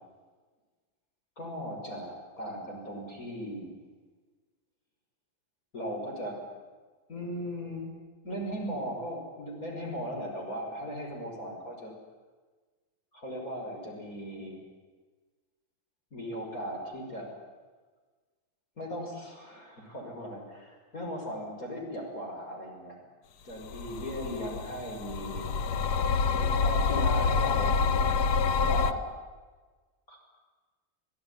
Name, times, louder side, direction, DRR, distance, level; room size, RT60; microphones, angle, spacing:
voice 1, 1.4-3.7 5.7-6.4 7.1-7.9 8.2-11.9 13.1-14.6 16.1-17.4 18.8-23.0 23.4-25.5 26.3-28.2 28.5-29.0 30.1-30.2, equal, 45° left, 0 dB, 6.5 m, -37 dB
sound 1, 23.7-28.9, left 5 dB, 60° left, 1.4 m, -27 dB
27.5 x 16.5 x 9.9 m, 1.4 s
omnidirectional pair, 2.2 m